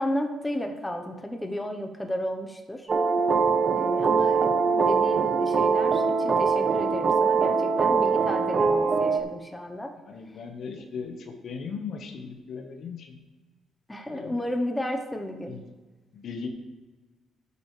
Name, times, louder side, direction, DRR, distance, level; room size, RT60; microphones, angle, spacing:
voice 1, 0.0-2.8 3.8-9.9 13.9-15.6, left 1 dB, 10° left, 4 dB, 1.0 m, -33 dB
sound 1, 2.9-9.2, right 5 dB, 40° right, 0.9 m, -23 dB
voice 2, 9.9-13.2 14.1-14.4 15.5-15.6 16.1-16.5, left 5 dB, 65° left, 5 dB, 1.3 m, -38 dB
11.5 x 8.5 x 3.3 m, 1.2 s
cardioid pair, 90°, 0 cm